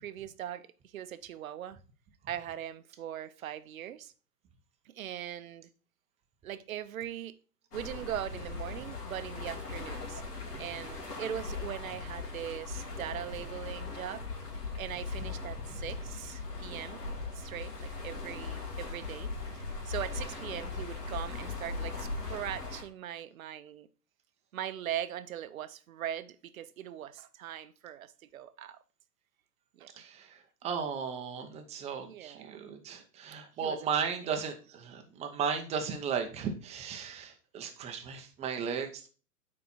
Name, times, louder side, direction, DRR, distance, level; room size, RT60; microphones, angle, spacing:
voice 1, 0.0-1.8 2.3-4.1 4.9-5.7 6.4-7.4 7.7-10.2 10.6-14.2 14.8-17.0 17.4-23.9 24.5-28.8 29.8-30.0 32.0-32.6 33.6-34.1, right 11 dB, 60° right, 0.8 m, -40 dB
sound 1, 7.7-22.8, left 4 dB, 70° left, 2.4 m, -39 dB
voice 2, 30.0-39.1, right 6 dB, 15° right, 0.8 m, -35 dB
9.1 x 4.3 x 4.3 m
figure-of-eight pair, 115°, 48 cm